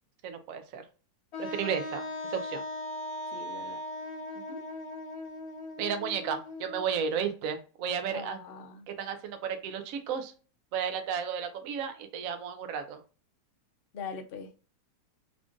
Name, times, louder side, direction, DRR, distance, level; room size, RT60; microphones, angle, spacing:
voice 1, 0.2-0.8 1.4-2.0 2.3-2.6 4.5-4.6 5.8-8.4 8.9-10.3 10.7-13.0, right 7 dB, 70° right, 7 dB, 0.8 m, -33 dB
Wind instrument woodwind instrument, 1.3-7.1, left 1 dB, 60° left, 1.3 m, -39 dB
voice 2, 3.3-3.8 8.1-8.9 13.9-14.6, left 6 dB, 85° left, 5 dB, 0.5 m, -41 dB
3.6 x 2.4 x 3.6 m, 0.36 s
omnidirectional pair, 1.8 m